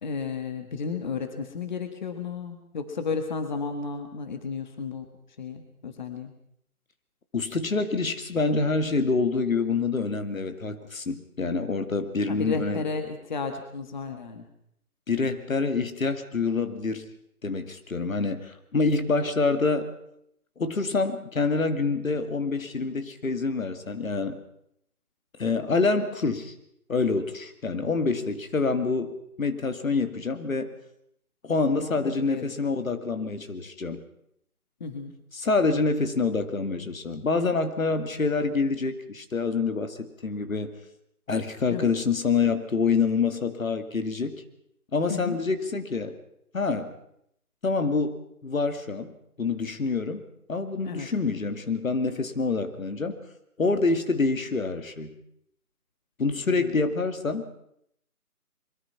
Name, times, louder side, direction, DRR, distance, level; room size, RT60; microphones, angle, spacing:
voice 1, 0.0-5.0 5.4-6.3 12.3-14.5 31.8-32.0 32.3-32.5 34.8-35.1 41.7-41.9 45.1-45.4 50.8-51.1 56.5-56.7, left 5 dB, 30° left, 7 dB, 1.7 m, -33 dB
voice 2, 7.3-12.8 15.1-17.1 17.4-19.9 20.6-24.4 25.4-26.5 26.9-30.7 31.4-34.0 35.3-40.7 41.3-44.4 44.9-46.1 46.5-46.9 47.6-49.1 49.4-50.2 50.5-53.2 53.6-55.2 56.2-57.6, left 4 dB, 60° left, 9 dB, 2.5 m, -26 dB
23.0 x 22.5 x 5.9 m, 0.72 s
figure-of-eight pair, 160°, 45 cm